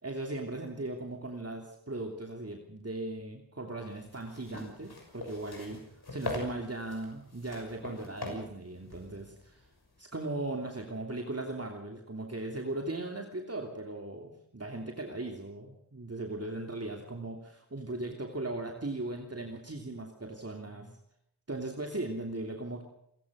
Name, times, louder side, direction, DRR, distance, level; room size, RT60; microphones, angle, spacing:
voice 1, 0.0-5.8 6.1-9.7 10.0-21.0 21.5-22.8, right 2 dB, 40° right, 2 dB, 3.0 m, -38 dB
sound 1, 3.9-10.0, left 2 dB, 85° left, 6.3 m, -42 dB
29.5 x 16.0 x 6.4 m, 0.73 s
wide cardioid pair, 50°, 37 cm